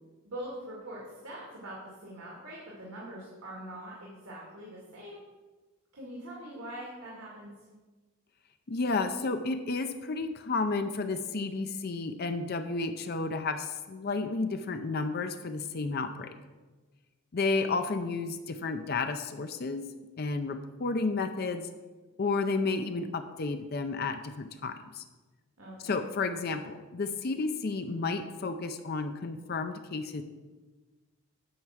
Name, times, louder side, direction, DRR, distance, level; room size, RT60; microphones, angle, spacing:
voice 1, 0.2-5.2 5.9-7.5 25.6-26.0, right 1 dB, 80° right, -5 dB, 2.2 m, -43 dB
voice 2, 8.7-16.3 17.3-19.9 20.2-21.7 22.2-25.0 25.8-30.2, left 3 dB, 45° left, 8 dB, 0.5 m, -32 dB
9.4 x 4.6 x 7.4 m, 1.3 s
head